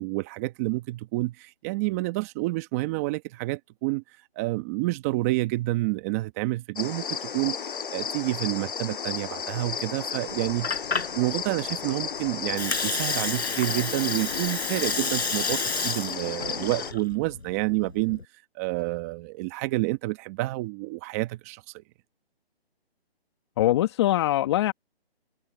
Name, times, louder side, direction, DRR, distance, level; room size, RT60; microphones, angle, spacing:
voice 1, 0.0-4.0 4.4-7.6 7.9-10.8 11.1-18.2 18.5-21.8, right 20 dB, 15° right, 1.3 m, -29 dB
sound 1, 6.8-16.9, left 7 dB, 55° left, 6.9 m, -33 dB
Water, 10.3-18.2, left 4 dB, 80° left, 5.5 m, -31 dB
voice 2, 23.6-24.7, left 14 dB, 25° left, 2.0 m, -22 dB
hypercardioid pair, 160°, 32 cm